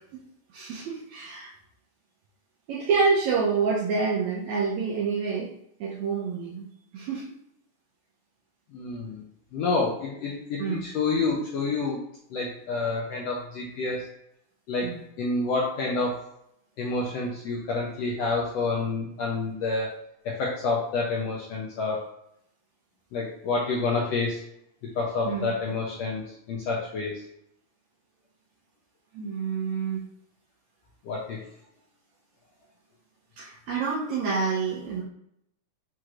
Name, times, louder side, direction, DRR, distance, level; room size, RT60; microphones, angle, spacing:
voice 1, 0.5-1.5 2.7-5.5 5.8-6.7 6.9-7.2 10.6-10.9 14.8-15.0 25.3-25.5 29.1-30.0 33.4-35.0, right 5 dB, 75° right, -5 dB, 1.9 m, -27 dB
voice 2, 8.7-9.2 9.5-12.0 12.3-14.1 14.7-16.2 16.8-19.9 20.2-22.0 23.1-24.4 24.9-26.2 26.5-27.1 31.0-31.4, left 3 dB, 80° left, -3 dB, 1.5 m, -28 dB
6.1 x 3.0 x 2.4 m, 0.76 s
omnidirectional pair, 3.7 m